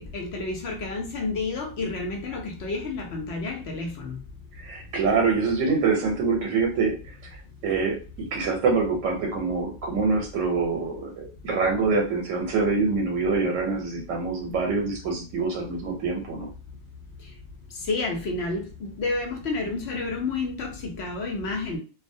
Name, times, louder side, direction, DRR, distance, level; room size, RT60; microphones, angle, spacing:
voice 1, 0.0-4.2 17.9-21.8, left 3 dB, 65° left, 1 dB, 0.8 m, -30 dB
voice 2, 4.6-7.1 7.6-16.5, right 4 dB, 90° right, 0 dB, 1.0 m, -25 dB
2.3 x 2.0 x 2.6 m, 0.36 s
omnidirectional pair, 1.3 m